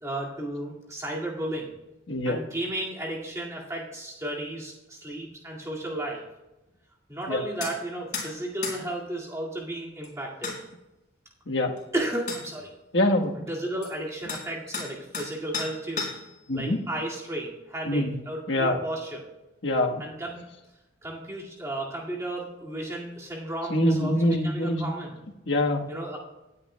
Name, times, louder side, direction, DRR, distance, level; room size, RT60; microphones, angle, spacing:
voice 1, 0.0-1.7 2.2-6.2 7.1-10.5 11.9-12.7 13.4-16.1 16.5-19.2 20.0-20.4 21.0-25.1 25.9-26.2, right 1 dB, 15° right, -4 dB, 2.1 m, -34 dB
sound 1, 7.6-7.8 8.1-8.3 8.6-8.8 10.0-10.1 10.4-10.6 11.8-11.9 12.3-12.5 13.8-13.9 14.3-14.5 14.7-15.3 15.5-16.3, left 4 dB, 40° left, 3.5 m, -33 dB
voice 2, 12.9-13.3 16.5-16.8 17.9-18.1 18.5-18.8 19.6-20.0 23.7-24.9 25.5-25.9, left 1 dB, 70° left, 2 dB, 1.3 m, -24 dB
18.5 x 9.6 x 2.2 m, 0.98 s
head